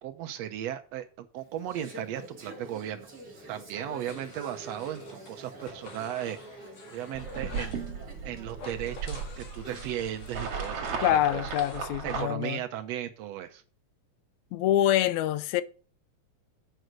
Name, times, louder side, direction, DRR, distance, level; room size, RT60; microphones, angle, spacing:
voice 1, 0.0-3.1 3.5-6.4 6.9-7.8 8.2-11.4 12.0-13.6, right 11 dB, 70° right, 1.8 m, -36 dB
Conversation / Chatter, 1.4-10.3, right 1 dB, 35° right, 2.9 m, -47 dB
sound 1, 4.1-5.3 5.6-7.9 8.5-11.8, left 4 dB, 65° left, 3.1 m, -48 dB
sound 2, 7.1-12.3, right 5 dB, 55° right, 2.7 m, -36 dB
voice 2, 11.0-12.6 14.5-15.6, left 12 dB, 80° left, 1.9 m, -25 dB
7.9 x 5.5 x 6.2 m
omnidirectional pair, 3.3 m